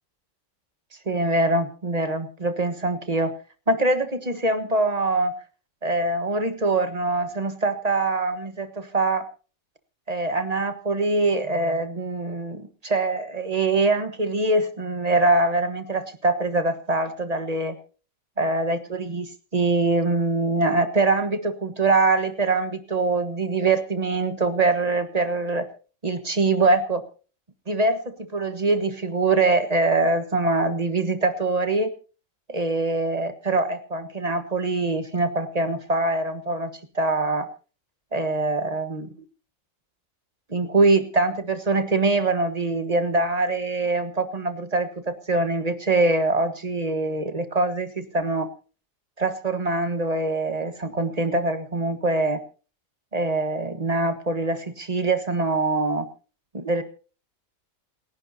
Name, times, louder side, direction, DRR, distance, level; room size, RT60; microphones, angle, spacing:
voice 1, 1.1-3.3 3.7-5.3 5.8-9.2 10.1-17.8 18.4-25.7 26.0-27.0 27.7-31.9 32.5-36.7 36.9-37.5 38.1-39.1 40.5-48.5 49.2-52.4 53.1-56.1 56.5-56.8, right 2 dB, 30° right, 9 dB, 1.4 m, -23 dB
28.5 x 11.0 x 2.7 m, 0.37 s
omnidirectional pair, 1.4 m